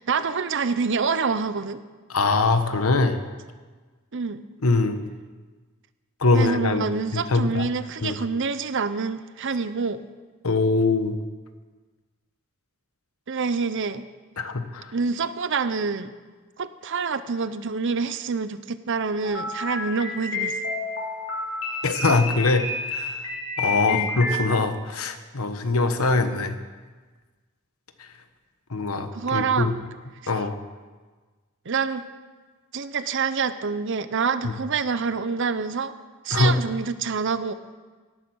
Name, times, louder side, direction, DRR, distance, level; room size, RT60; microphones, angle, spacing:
voice 1, 0.0-1.8 4.1-4.4 6.3-10.0 13.3-14.0 14.9-16.1 16.6-20.6 23.9-24.2 29.1-29.7 31.7-32.0 32.7-35.9 36.2-37.5, right 5 dB, 60° right, 13 dB, 0.7 m, -26 dB
voice 2, 2.1-3.2 4.6-5.0 6.2-7.7 8.0-8.2 10.4-11.2 14.4-14.9 21.8-23.2 23.6-26.6 28.0-28.1 28.7-29.7 30.3-30.5 34.4-34.5 36.3-36.6, left 3 dB, 85° left, 8 dB, 1.2 m, -23 dB
sound 1, 19.2-24.4, left 3 dB, 65° left, 3.5 m, -30 dB
18.0 x 9.0 x 6.4 m, 1.4 s
head